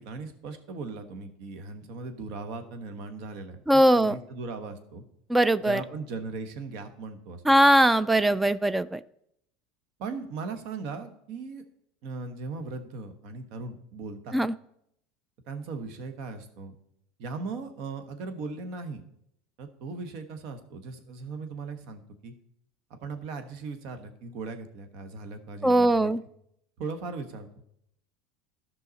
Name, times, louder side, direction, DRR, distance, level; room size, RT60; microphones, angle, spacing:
voice 1, 0.0-5.0 5.6-7.4 10.0-11.6 12.0-14.4 15.5-16.7 17.2-19.0 19.6-22.3 22.9-26.1 26.8-27.5, right 4 dB, 65° right, 8 dB, 1.3 m, -38 dB
voice 2, 3.7-4.1 5.3-5.8 7.5-9.0 14.3-14.5 25.6-26.2, right 1 dB, 10° right, 17 dB, 0.3 m, -20 dB
13.5 x 5.7 x 4.1 m, 0.75 s
supercardioid pair, 105°, 0 cm